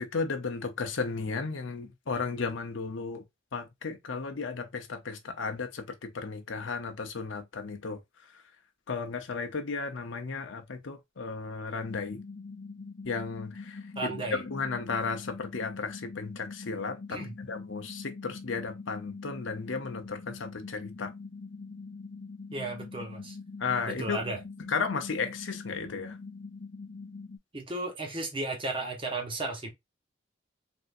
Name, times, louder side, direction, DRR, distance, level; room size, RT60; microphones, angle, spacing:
voice 1, 0.0-3.2 3.5-8.0 8.9-12.2 13.0-14.1 14.4-21.1 23.6-24.2 24.7-26.2, left 4 dB, 75° left, 0.7 m, -34 dB
sound 1, 11.8-27.4, left 4 dB, 40° left, 0.6 m, -43 dB
voice 2, 14.0-14.4 17.1-17.3 22.5-23.4 23.9-24.4 27.5-29.7, right 2 dB, 25° right, 1.0 m, -34 dB
3.5 x 2.7 x 2.5 m
head